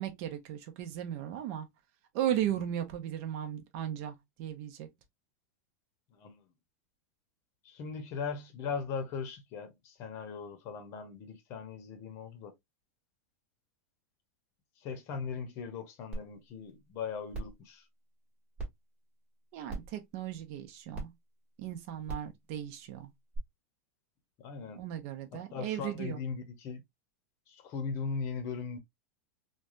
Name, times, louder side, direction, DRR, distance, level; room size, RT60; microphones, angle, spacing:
voice 1, 0.0-1.7 2.1-4.9 19.5-21.1 21.6-23.1 24.8-26.2, right 11 dB, 45° right, 0.7 m, -36 dB
voice 2, 6.1-6.4 7.6-12.5 14.8-17.8 24.4-24.8 25.3-26.8 27.5-28.8, left 5 dB, 35° left, 0.8 m, -39 dB
sound 1, 16.1-16.2 16.7-16.8 17.3-17.6 18.6-18.7 19.7-20.0 20.9-21.0 22.0-22.3 23.3-23.4, right 2 dB, 10° right, 1.3 m, -38 dB
3.3 x 2.2 x 2.4 m
supercardioid pair, 155°, 8 cm